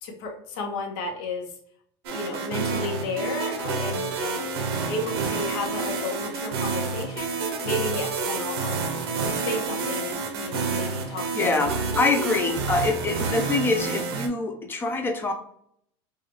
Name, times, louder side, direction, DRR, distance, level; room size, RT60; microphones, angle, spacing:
voice 1, 0.0-1.5 2.1-8.8 9.4-11.6 12.2-12.3, left 3 dB, 70° left, 1 dB, 1.1 m, -33 dB
sound 1, 2.0-14.3, right 4 dB, 90° right, 0.8 m, -29 dB
voice 2, 11.3-15.3, left 3 dB, 15° left, 5 dB, 0.5 m, -25 dB
4.6 x 2.4 x 3.0 m, 0.69 s
supercardioid pair, 140°, 13 cm